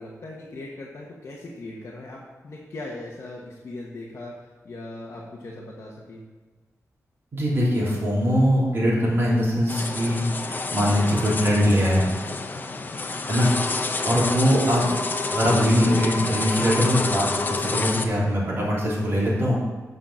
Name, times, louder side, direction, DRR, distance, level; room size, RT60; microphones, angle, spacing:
voice 1, 0.0-4.3 4.6-6.2, left 2 dB, 50° left, -3 dB, 1.2 m, -39 dB
voice 2, 7.3-10.2 10.7-12.1 13.3-13.5 14.0-14.8 15.3-19.6, equal, 40° right, -6 dB, 3.2 m, -21 dB
sound 1, 9.7-18.1, left 3 dB, 30° left, 0.6 m, -28 dB
8.0 x 5.8 x 6.2 m, 1.4 s
wide cardioid pair, 165°, 6 cm